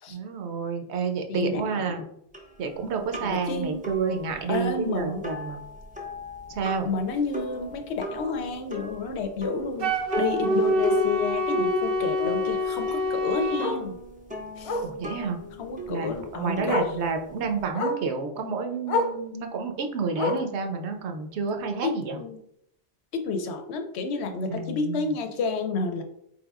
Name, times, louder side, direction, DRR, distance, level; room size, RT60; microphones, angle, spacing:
voice 1, 0.1-2.0 2.6-5.6 6.5-6.9 14.8-15.4 15.9-22.2 24.5-25.1, right 5 dB, 80° right, 5 dB, 0.9 m, -30 dB
voice 2, 1.3-1.8 3.2-3.8 4.5-5.2 6.8-14.0 14.6-14.8 15.6-16.8 21.4-21.6 21.8-22.4 23.1-26.0, left 4 dB, 80° left, 6 dB, 0.9 m, -30 dB
sound 1, 2.3-17.7, left 1 dB, 10° right, 0.6 m, -36 dB
Bark, 7.1-7.3 7.7-7.8 8.2-8.3 8.6-8.7 10.1-10.2 12.7-12.8 13.6-13.9 14.6-15.0 16.1-16.2 16.7-17.0 17.7-18.1 18.9-19.2 20.1-20.6 21.6-21.7, left 2 dB, 60° left, 0.3 m, -28 dB
Wind instrument woodwind instrument, 9.8-13.7, left 1 dB, 55° right, 0.6 m, -26 dB
4.2 x 3.4 x 2.3 m, 0.75 s
omnidirectional pair, 1.1 m